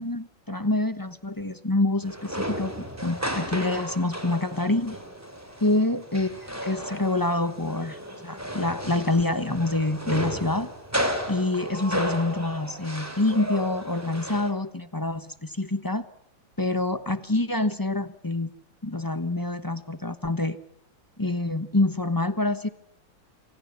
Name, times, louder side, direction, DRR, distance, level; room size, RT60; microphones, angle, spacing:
voice 1, 0.0-5.0 5.6-10.7 11.3-16.1 16.6-18.5 18.8-20.6 21.2-22.7, left 2 dB, 15° left, 12 dB, 0.7 m, -26 dB
sound 1, 2.0-14.5, equal, 10° right, 3.1 m, -33 dB
25.5 x 18.0 x 9.6 m, 0.72 s
omnidirectional pair, 2.1 m